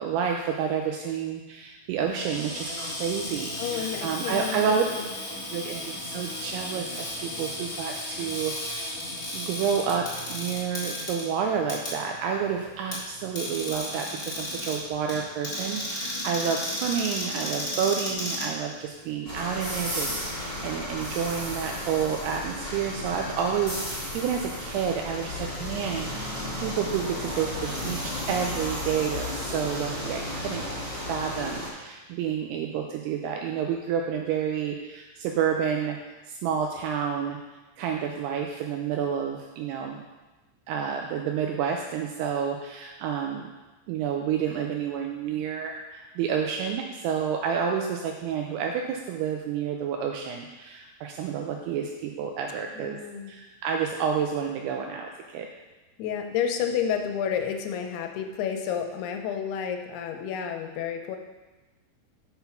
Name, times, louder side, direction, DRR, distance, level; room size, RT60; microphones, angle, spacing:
voice 1, 0.0-4.8 5.5-8.9 9.3-30.7 31.1-36.0 36.3-37.4 37.8-40.0 40.7-43.5 43.9-53.0 53.3-55.5, right 7 dB, 80° right, 2 dB, 2.5 m, -29 dB
Cupboard open or close, 2.1-19.1, left 1 dB, 45° left, 0.9 m, -34 dB
voice 2, 3.6-5.1 52.7-53.3 56.0-61.2, left 8 dB, 80° left, 4 dB, 2.6 m, -30 dB
sound 1, 19.2-31.7, left 1 dB, 45° right, 0.4 m, -33 dB
5.9 x 5.8 x 5.6 m, 1.2 s
omnidirectional pair, 4.8 m